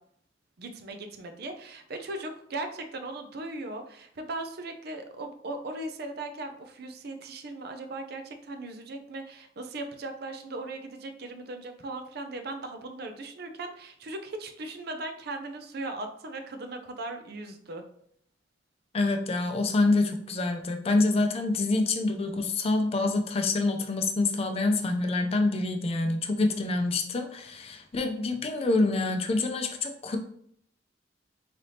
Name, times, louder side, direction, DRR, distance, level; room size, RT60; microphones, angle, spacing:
voice 1, 0.6-17.8, right 2 dB, 60° right, 6 dB, 0.5 m, -38 dB
voice 2, 18.9-30.2, left 2 dB, 35° left, 5 dB, 0.4 m, -26 dB
4.0 x 3.3 x 2.7 m, 0.65 s
head